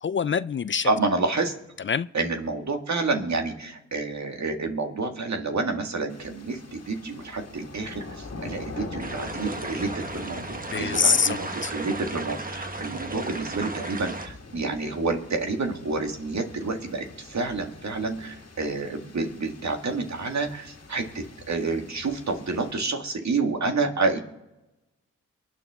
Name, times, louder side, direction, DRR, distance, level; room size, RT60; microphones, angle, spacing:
voice 1, 0.0-0.9 1.8-2.1 10.7-11.7, left 6 dB, 40° left, 0.4 m, -25 dB
voice 2, 0.8-1.5 2.1-24.2, right 3 dB, 65° right, 1.9 m, -29 dB
sound 1, 6.1-22.7, left 3 dB, 55° left, 1.9 m, -44 dB
sound 2, 9.0-14.3, right 2 dB, 30° right, 1.3 m, -35 dB
23.5 x 9.3 x 3.6 m
cardioid pair, 45°, 30 cm